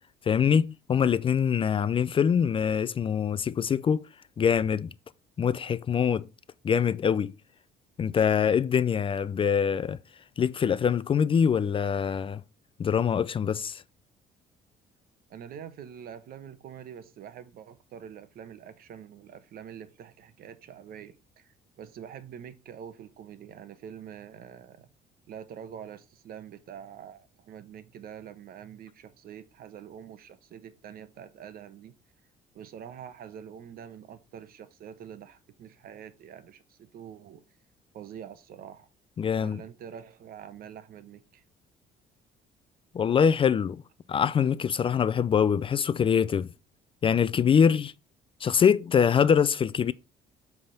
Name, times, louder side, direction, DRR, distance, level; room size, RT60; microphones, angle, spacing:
voice 1, 0.3-4.1 4.4-4.9 5.4-6.3 6.6-7.3 8.0-10.0 10.4-12.4 12.8-13.8 39.2-39.6 42.9-43.8 44.1-46.5 47.0-47.9 48.4-49.9, left 7 dB, 30° left, 0.4 m, -24 dB
voice 2, 15.3-24.9 25.3-31.9 32.5-37.4 37.9-38.9 39.4-41.4, right 8 dB, 60° right, 0.9 m, -45 dB
7.8 x 3.6 x 5.6 m
cardioid pair, 110°, 17 cm